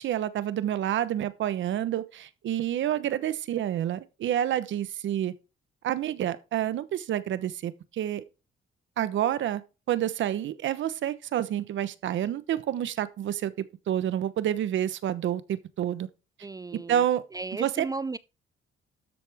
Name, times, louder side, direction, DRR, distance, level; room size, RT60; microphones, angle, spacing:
voice 1, 0.0-5.3 5.8-8.2 9.0-9.6 9.9-16.1 16.7-17.2 17.5-17.9, right 11 dB, 75° right, 1.1 m, -28 dB
voice 2, 16.4-17.0 17.3-18.2, right 3 dB, 20° right, 0.4 m, -35 dB
13.0 x 7.7 x 3.6 m
cardioid pair, 90°, 20 cm